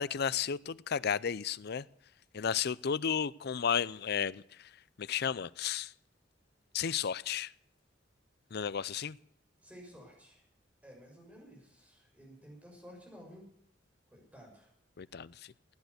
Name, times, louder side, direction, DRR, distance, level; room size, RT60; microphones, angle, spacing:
voice 1, 0.0-1.8 2.3-4.4 5.0-5.9 6.7-7.5 8.5-9.2 15.0-15.3, left 7 dB, 60° left, 19 dB, 0.5 m, -33 dB
voice 2, 9.6-10.4 10.8-13.5 14.1-14.7, equal, 10° right, -1 dB, 6.2 m, -53 dB
16.5 x 10.5 x 8.3 m, 0.68 s
head